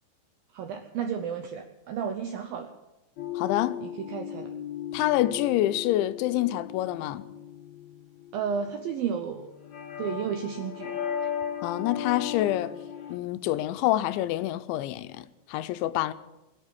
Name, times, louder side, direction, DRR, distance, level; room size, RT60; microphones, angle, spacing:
voice 1, 0.5-2.7 3.8-4.5 8.3-9.5 10.0-10.9, right 7 dB, 80° right, 2.1 m, -32 dB
sound 1, 3.2-13.2, left 8 dB, 50° left, 2.3 m, -37 dB
voice 2, 3.4-3.8 4.9-7.3 11.6-12.7 13.1-16.1, left 14 dB, 85° left, 3.0 m, -27 dB
20.5 x 8.3 x 8.5 m
omnidirectional pair, 5.3 m